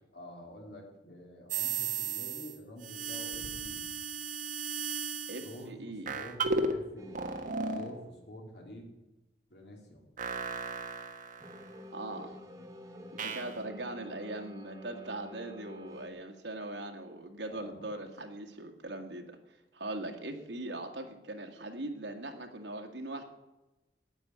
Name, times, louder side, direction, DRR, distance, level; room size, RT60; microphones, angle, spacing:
voice 1, 0.1-3.9 5.4-7.3 7.7-8.9 9.5-10.1 17.5-17.9, left 1 dB, 65° left, 1 dB, 2.8 m, -48 dB
sound 1, 1.5-2.6 2.8-5.6 6.1-6.8 7.1-7.9 10.2-11.7 13.2-13.5, right 4 dB, 50° right, 1.4 m, -35 dB
voice 2, 5.3-6.1 11.9-12.4 13.1-19.3 19.7-23.2, right 2 dB, 75° right, 3 dB, 1.9 m, -40 dB
sound 2, 7.0-7.9 11.4-16.1, left 1 dB, 20° right, 1.2 m, -49 dB
9.7 x 8.6 x 9.4 m, 1.0 s
head